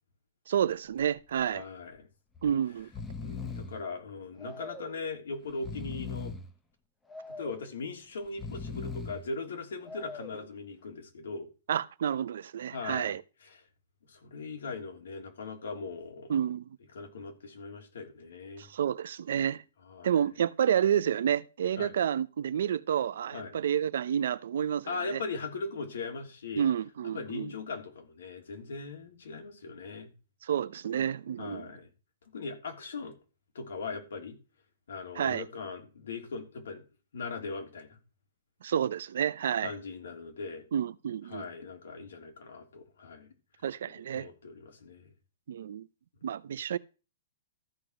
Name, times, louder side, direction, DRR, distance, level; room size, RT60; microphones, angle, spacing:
voice 1, 0.5-1.6 2.4-2.9 11.7-13.2 16.3-16.6 18.6-19.6 20.0-25.2 26.6-27.5 30.4-31.7 35.2-35.4 38.6-39.7 40.7-41.5 43.6-44.3 45.5-45.9 46.2-46.8, right 9 dB, 60° right, 0.6 m, -29 dB
Breathing, 0.7-1.1 1.4-1.5 2.3-2.5 2.8-3.8 4.4-5.0 5.5-6.5 7.1-7.7 8.3-9.3 9.8-10.5, left 4 dB, 5° left, 0.7 m, -40 dB
voice 2, 1.5-2.1 3.2-6.3 7.4-11.5 12.7-13.2 13.4-13.6 14.1-16.3 16.9-18.7 19.9-20.1 21.8-21.9 23.3-23.5 24.9-26.7 27.1-30.1 31.4-31.9 32.3-33.2 33.5-34.4 34.9-36.8 37.1-38.0 39.6-40.7 41.3-43.3 43.9-45.1, left 4 dB, 85° left, 3.2 m, -39 dB
13.5 x 4.9 x 6.3 m
hypercardioid pair, 180°, 0 cm